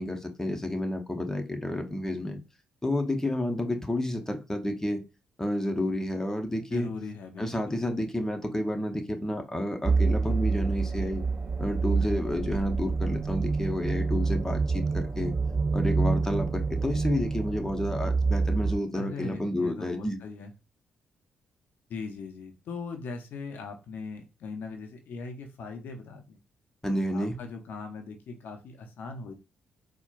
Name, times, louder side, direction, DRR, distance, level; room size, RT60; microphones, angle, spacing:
voice 1, 0.0-2.4 2.8-5.0 5.4-6.9 7.4-11.2 11.6-15.3 15.7-20.2 26.8-27.4, left 1 dB, 15° left, 0.8 m, -30 dB
voice 2, 6.7-7.8 18.9-20.5 21.9-26.4 27.1-29.3, left 4 dB, 65° left, 0.5 m, -40 dB
sound 1, 9.8-18.8, right 4 dB, 30° right, 0.5 m, -27 dB
4.2 x 2.2 x 2.4 m
hypercardioid pair, 40°, 4 cm